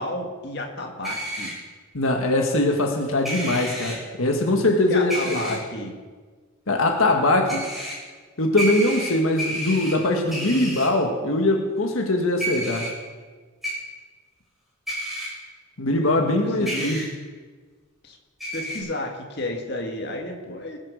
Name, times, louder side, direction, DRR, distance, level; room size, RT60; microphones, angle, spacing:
voice 1, 0.0-1.5 4.9-5.9 16.4-16.9 18.0-18.2 18.5-20.8, left 1 dB, 50° left, 2 dB, 1.8 m, -32 dB
sound 1, 1.0-1.5 3.3-4.0 5.1-5.6 7.5-8.0 8.6-9.9 10.3-10.9 12.4-12.9 13.6-13.7 14.9-15.3 16.7-17.1 18.4-18.8, right 1 dB, ahead, 4.1 m, -30 dB
voice 2, 1.9-5.6 6.7-7.6 8.4-12.9 15.8-17.0, left 2 dB, 80° left, 2 dB, 1.6 m, -22 dB
20.5 x 7.4 x 6.4 m, 1.4 s
head